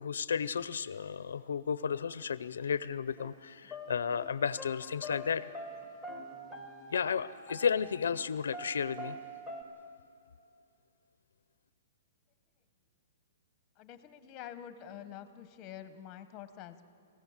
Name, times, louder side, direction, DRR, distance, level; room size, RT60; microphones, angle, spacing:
voice 1, 0.0-5.5 6.9-9.2, left 7 dB, 85° left, 17 dB, 0.6 m, -33 dB
sound 1, 3.2-3.3 3.7-8.2 8.5-9.6, equal, ahead, 1.6 m, -45 dB
voice 2, 13.8-16.8, left 10 dB, 25° left, 11 dB, 1.1 m, -47 dB
26.5 x 15.5 x 7.3 m, 2.5 s
hypercardioid pair, 160°, 0 cm